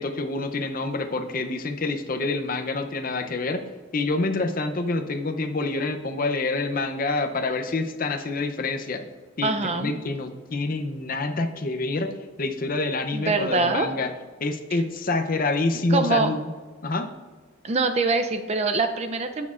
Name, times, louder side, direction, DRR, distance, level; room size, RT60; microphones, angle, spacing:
voice 1, 0.0-3.6 3.9-9.0 9.4-12.1 12.4-14.1 14.4-16.5 16.8-17.1, left 3 dB, 45° left, 6 dB, 0.6 m, -27 dB
voice 2, 9.4-9.9 13.1-13.9 15.9-16.4 17.6-19.5, right 3 dB, 30° right, 7 dB, 0.5 m, -24 dB
15.5 x 6.4 x 2.5 m, 1.4 s
head